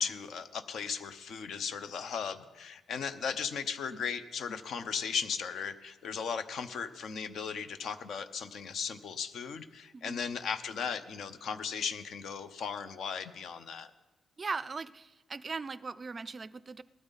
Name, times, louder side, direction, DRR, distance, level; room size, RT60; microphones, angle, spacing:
voice 1, 0.0-13.9, left 6 dB, 65° left, 10 dB, 0.8 m, -36 dB
voice 2, 14.4-16.8, right 4 dB, 30° right, 17 dB, 0.4 m, -39 dB
18.5 x 12.5 x 4.1 m, 1.2 s
cardioid pair, 135°, 0 cm